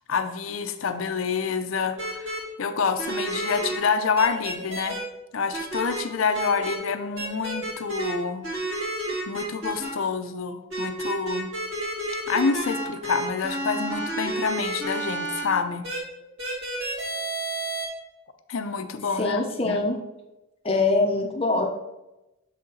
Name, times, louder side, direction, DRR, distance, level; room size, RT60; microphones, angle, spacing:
voice 1, 0.0-5.0 5.3-8.4 9.3-11.5 12.3-15.9 18.5-19.4 19.6-19.8, left 5 dB, 80° left, 9 dB, 0.6 m, -27 dB
sound 1, 2.0-2.4 3.0-3.8 4.2-5.0 5.5-6.0 6.3-6.8 7.2-8.1 8.4-9.9 10.7-15.4 15.8-16.0 16.4-17.8, right 1 dB, 70° right, 2.2 m, -30 dB
voice 2, 19.2-20.0 20.6-21.7, left 3 dB, 30° left, 2 dB, 0.6 m, -23 dB
6.8 x 4.1 x 3.8 m, 0.97 s
head